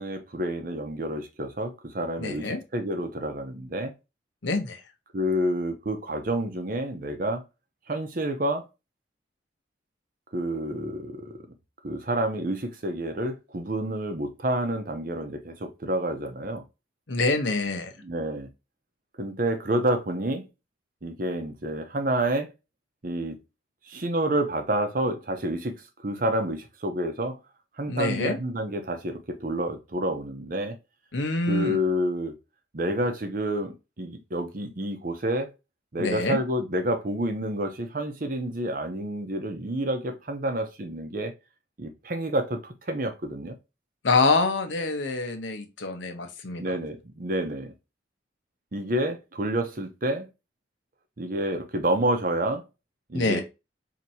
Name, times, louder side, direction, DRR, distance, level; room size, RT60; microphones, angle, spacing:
voice 1, 0.0-3.9 5.1-7.4 7.9-8.7 10.3-11.4 11.8-16.6 18.0-18.5 19.2-20.4 21.0-22.5 23.0-23.4 23.9-27.4 27.8-30.8 31.5-32.3 32.7-35.5 35.9-41.3 41.8-43.5 46.6-47.7 48.7-50.3 51.2-52.6 53.1-53.4, right 1 dB, 50° right, 0.7 m, -29 dB
voice 2, 2.2-2.6 4.4-4.8 17.1-17.9 27.9-28.4 31.1-31.8 36.0-36.4 44.0-46.6 53.1-53.4, left 3 dB, 85° left, 0.9 m, -26 dB
4.4 x 2.9 x 2.6 m
head